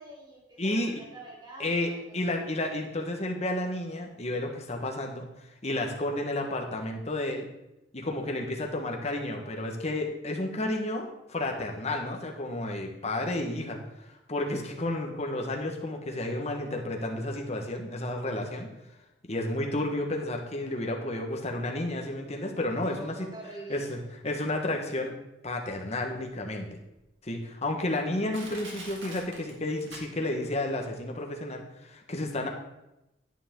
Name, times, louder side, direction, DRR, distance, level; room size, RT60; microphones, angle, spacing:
voice 1, 0.0-2.2 22.8-23.9, right 1 dB, 25° right, -3 dB, 2.7 m, -46 dB
voice 2, 0.6-1.0 1.6-5.2 5.6-7.4 7.9-13.8 14.3-18.7 19.3-23.3 23.7-25.1 25.4-26.8 27.2-32.5, left 1 dB, 35° left, 2 dB, 1.4 m, -31 dB
Crushing, 27.0-27.1 27.7-27.8 28.3-30.5 30.8-30.9, right 2 dB, 80° right, 2.4 m, -44 dB
10.0 x 9.2 x 3.8 m, 0.92 s
head